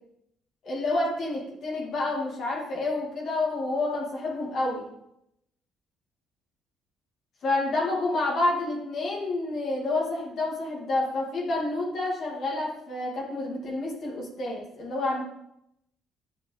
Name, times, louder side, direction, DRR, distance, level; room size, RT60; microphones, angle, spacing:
voice 1, 0.6-4.9 7.4-15.2, left 2 dB, 60° left, -3 dB, 2.2 m, -29 dB
10.0 x 6.3 x 3.3 m, 0.78 s
hypercardioid pair, 55°, 0 cm